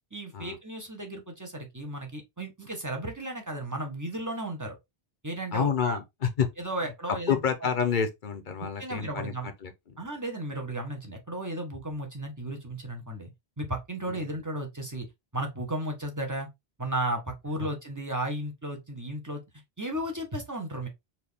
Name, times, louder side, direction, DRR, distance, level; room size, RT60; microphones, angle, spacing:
voice 1, 0.1-4.8 5.2-6.0 6.6-7.4 8.6-9.5 10.0-13.3 13.6-15.1 15.3-16.5 16.8-19.4 19.8-20.9, right 1 dB, 20° right, 1.1 m, -34 dB
voice 2, 5.5-6.0 6.4-6.5 7.1-9.7, left 7 dB, 50° left, 0.9 m, -28 dB
4.3 x 2.8 x 3.4 m
omnidirectional pair, 1.1 m